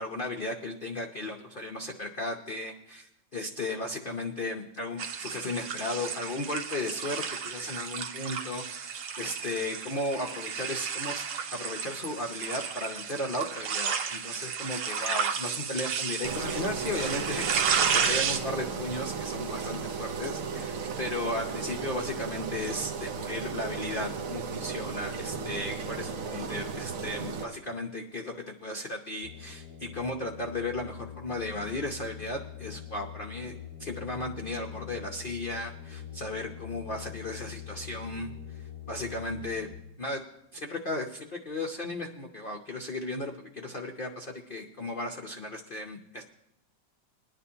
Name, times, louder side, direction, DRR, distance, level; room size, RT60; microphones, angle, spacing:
voice 1, 0.0-11.2 11.5-33.5 33.8-39.7 40.0-40.2 40.5-46.3, left 2 dB, 90° left, 2 dB, 0.4 m, -35 dB
sound 1, 5.0-18.4, right 6 dB, 80° right, 1.6 m, -32 dB
Engine, 16.2-27.5, right 6 dB, 55° right, 1.0 m, -35 dB
sound 2, 29.2-39.8, left 11 dB, 30° left, 1.3 m, -44 dB
21.5 x 10.0 x 2.8 m, 0.86 s
omnidirectional pair, 2.0 m